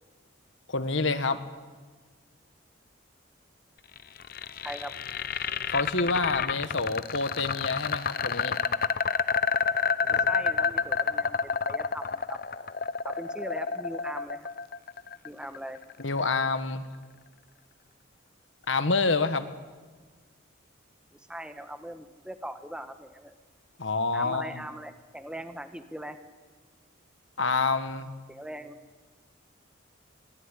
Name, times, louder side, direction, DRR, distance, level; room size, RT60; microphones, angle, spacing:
voice 1, 0.7-1.4 5.7-8.6 16.0-16.9 18.7-19.5 23.8-24.6 27.4-28.1, left 3 dB, 65° left, 11 dB, 1.5 m, -27 dB
sound 1, 4.0-16.0, left 6 dB, 45° left, 0.7 m, -29 dB
voice 2, 10.1-12.4 13.0-14.5 15.2-15.8 21.1-23.3 24.1-26.2 28.3-28.8, equal, 5° right, 9 dB, 1.2 m, -40 dB
23.0 x 17.0 x 9.9 m, 1.4 s
head